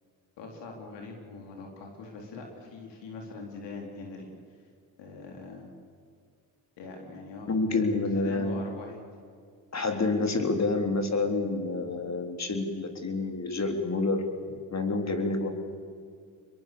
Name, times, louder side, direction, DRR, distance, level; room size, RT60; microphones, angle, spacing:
voice 1, 0.4-4.3 5.0-5.7 6.8-9.0, left 3 dB, 85° left, 1 dB, 4.2 m, -42 dB
voice 2, 7.5-8.6 9.7-14.2 14.5-15.5, left 3 dB, 40° left, 5 dB, 3.7 m, -28 dB
24.5 x 22.0 x 7.0 m, 2.2 s
supercardioid pair, 70°, 41 cm